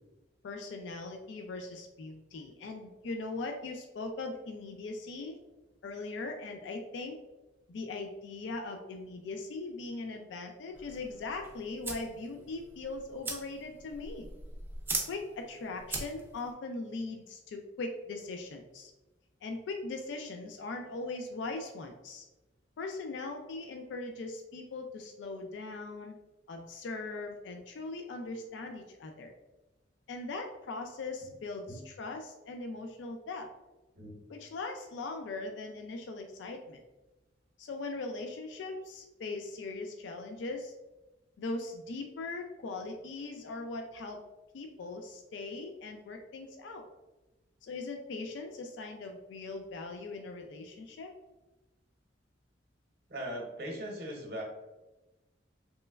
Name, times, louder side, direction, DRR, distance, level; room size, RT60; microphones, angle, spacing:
voice 1, 0.4-5.4 5.8-7.2 7.7-14.3 15.1-18.9 19.4-22.2 22.8-26.1 26.5-29.3 30.1-33.5 34.3-36.8 37.6-40.7 41.4-44.2 44.5-46.8 47.6-51.1, left 3 dB, 80° left, 4 dB, 0.3 m, -40 dB
sound 1, 10.7-16.5, right 3 dB, 10° right, 0.3 m, -41 dB
voice 2, 53.1-54.4, equal, 55° right, 0 dB, 0.7 m, -39 dB
3.1 x 3.1 x 2.2 m, 1.1 s
head